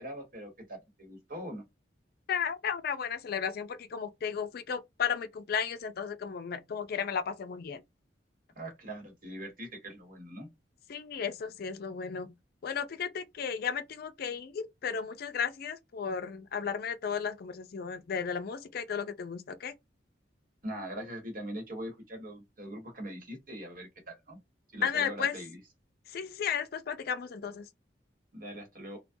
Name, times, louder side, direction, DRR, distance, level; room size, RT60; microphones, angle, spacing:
voice 1, 0.0-1.6 8.5-10.5 20.6-24.4 24.7-25.6 28.3-29.0, right 1 dB, 50° right, 1.2 m, -42 dB
voice 2, 2.3-7.8 10.9-12.3 12.6-19.7 24.8-25.4 26.1-27.7, left 7 dB, 60° left, 0.4 m, -34 dB
2.3 x 2.2 x 2.6 m
head